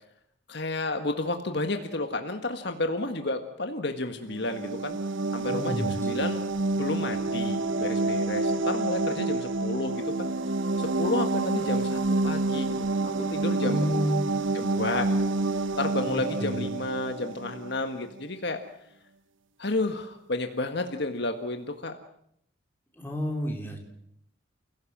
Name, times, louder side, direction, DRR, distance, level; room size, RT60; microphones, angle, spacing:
voice 1, 0.5-5.0 5.3-6.4 6.8-10.3 10.8-14.0 14.5-15.4 15.8-18.6 19.6-22.0, left 2 dB, 55° left, 6 dB, 1.7 m, -31 dB
sound 1, 4.3-17.9, right 2 dB, 70° right, 0.9 m, -28 dB
voice 2, 5.4-5.9 13.6-14.3 16.1-16.6 23.0-23.8, equal, 10° left, 1 dB, 3.8 m, -30 dB
29.5 x 17.0 x 7.5 m, 0.72 s
head